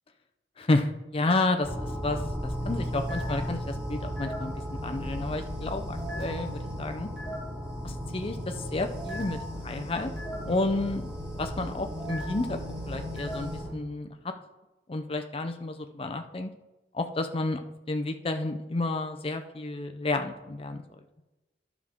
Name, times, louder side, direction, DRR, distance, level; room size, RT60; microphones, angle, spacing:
voice 1, 0.6-7.1 7.8-10.1 10.5-11.1 11.4-12.6 12.9-14.3 14.9-16.5 16.9-17.6 17.9-20.8, left 2 dB, 30° left, 7 dB, 0.6 m, -31 dB
sound 1, 1.6-13.7, equal, 5° right, 3.4 m, -35 dB
11.5 x 6.0 x 3.7 m, 1.1 s
head